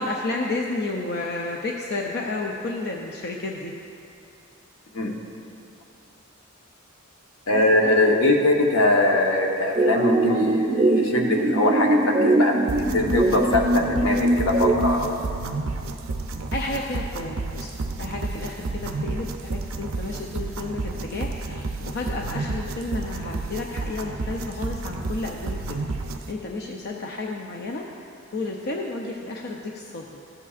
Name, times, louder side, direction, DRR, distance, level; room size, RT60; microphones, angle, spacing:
voice 1, 0.0-3.7 7.5-8.2 16.5-17.7 18.0-25.8 26.3-27.9 28.3-30.1, left 2 dB, 50° left, 0 dB, 0.5 m, -31 dB
voice 2, 7.5-15.2, left 2 dB, 75° left, 1 dB, 1.1 m, -22 dB
sound 1, 9.8-15.1, right 1 dB, 25° right, 0.4 m, -22 dB
sound 2, 12.7-26.3, right 3 dB, 70° right, 0.5 m, -31 dB
15.0 x 8.3 x 2.4 m, 2.6 s
head